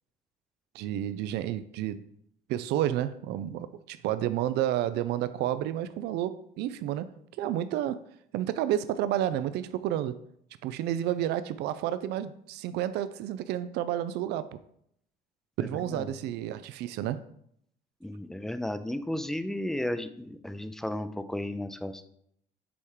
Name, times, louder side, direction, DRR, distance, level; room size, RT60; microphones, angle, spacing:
voice 1, 0.7-2.0 2.5-7.1 7.4-8.0 8.3-10.2 10.6-14.6 15.6-17.2, right 12 dB, 75° right, 0.4 m, -30 dB
voice 2, 15.6-16.1 18.0-22.1, left 1 dB, ahead, 0.4 m, -34 dB
7.0 x 3.6 x 4.8 m
cardioid pair, 115°, 17 cm